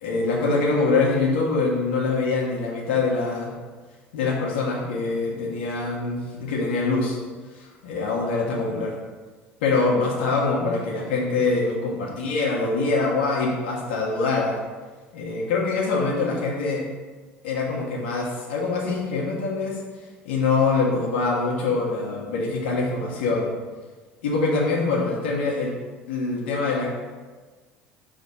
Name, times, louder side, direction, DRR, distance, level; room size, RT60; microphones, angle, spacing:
voice 1, 0.0-3.5 4.1-7.2 7.6-8.9 9.6-14.6 15.1-16.8 17.4-19.7 20.2-23.5 24.2-25.7 26.1-26.9, left 3 dB, 80° left, -2 dB, 1.2 m, -24 dB
5.1 x 3.5 x 5.5 m, 1.4 s
hypercardioid pair, 65°, 6 cm